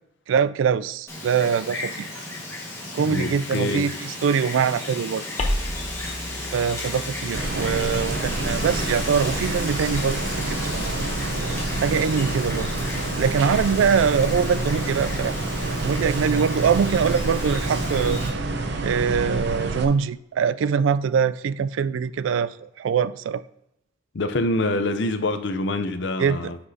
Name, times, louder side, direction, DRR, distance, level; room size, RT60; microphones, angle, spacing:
voice 1, 0.3-2.1 2.9-5.2 6.5-10.2 10.5-11.0 11.8-12.7 13.2-15.3 15.8-18.2 18.8-23.4 26.2-26.5, right 6 dB, 90° right, 0.3 m, -23 dB
Wind, 1.1-18.3, left 2 dB, 15° left, 1.6 m, -34 dB
voice 2, 3.1-3.9 24.1-26.6, left 2 dB, 65° left, 0.6 m, -25 dB
sound 1, 5.4-10.2, equal, 35° left, 0.8 m, -34 dB
sound 2, 7.3-19.9, right 2 dB, 65° right, 0.7 m, -28 dB
7.9 x 5.9 x 2.8 m
head